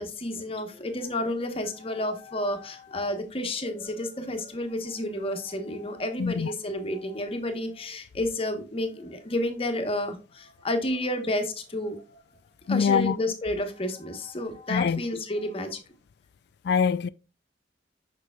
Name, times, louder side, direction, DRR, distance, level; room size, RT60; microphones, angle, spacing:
voice 1, 0.0-12.2 12.7-15.8, left 1 dB, 30° left, 1.1 m, -31 dB
voice 2, 6.2-6.5 12.7-13.2 14.7-15.0 16.6-17.1, left 6 dB, 60° left, 0.3 m, -24 dB
6.6 x 6.2 x 2.3 m
head